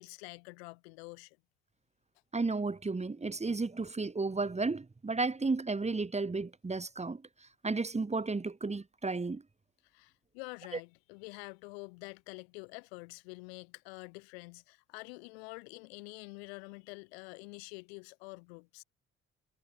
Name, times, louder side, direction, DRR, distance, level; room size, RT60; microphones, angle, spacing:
voice 1, 0.0-1.4 9.8-18.8, left 30 dB, 90° left, 5.7 m, -47 dB
voice 2, 2.3-7.2 7.6-9.4, right 3 dB, 20° right, 1.7 m, -33 dB
hypercardioid pair, 55°, 30 cm